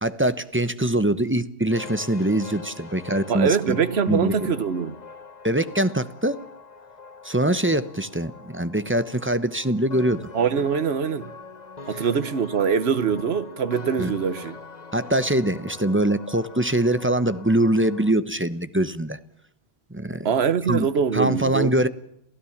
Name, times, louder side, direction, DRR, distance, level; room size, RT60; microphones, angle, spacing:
voice 1, 0.0-3.8 4.1-4.5 5.4-6.4 7.2-10.3 11.9-12.0 14.0-14.1 14.9-19.2 19.9-20.3 20.7-20.9 21.1-21.9, right 1 dB, 10° right, 0.9 m, -23 dB
sound 1, 1.7-18.1, left 4 dB, 40° left, 1.5 m, -43 dB
voice 2, 3.3-5.0 10.3-11.3 11.9-14.6 20.2-21.7, right 6 dB, 75° right, 1.3 m, -23 dB
28.0 x 16.0 x 7.3 m
omnidirectional pair, 1.1 m